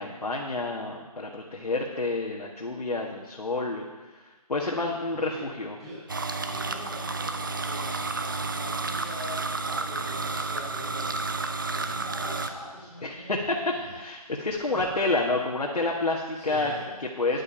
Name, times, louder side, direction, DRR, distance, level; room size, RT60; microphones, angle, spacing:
voice 1, 0.0-3.8 4.5-5.8 13.0-13.6 13.9-16.7 17.0-17.4, left 2 dB, 85° left, -2 dB, 1.6 m, -29 dB
voice 2, 5.1-5.4 5.7-6.0 6.4-13.3 13.6-14.8 16.3-17.0, equal, ahead, -13 dB, 3.1 m, -43 dB
sound 1, 6.1-12.5, right 3 dB, 35° right, 0.6 m, -31 dB
10.0 x 9.1 x 5.7 m, 1.2 s
figure-of-eight pair, 165°, 20 cm